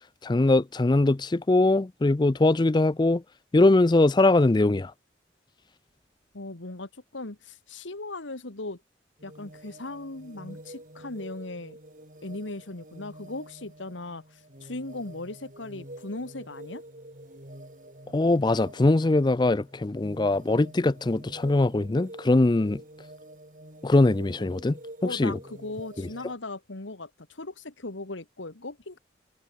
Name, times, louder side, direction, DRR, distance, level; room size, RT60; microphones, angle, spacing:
voice 1, 0.2-3.2 3.5-4.9 18.1-22.8 23.8-24.8 25.1-25.4, left 2 dB, 25° left, 0.4 m, -22 dB
voice 2, 6.3-8.8 9.2-11.8 12.2-16.8 25.0-29.0, left 2 dB, 90° left, 2.0 m, -38 dB
sound 1, 9.2-26.4, right 1 dB, 45° right, 6.8 m, -47 dB
head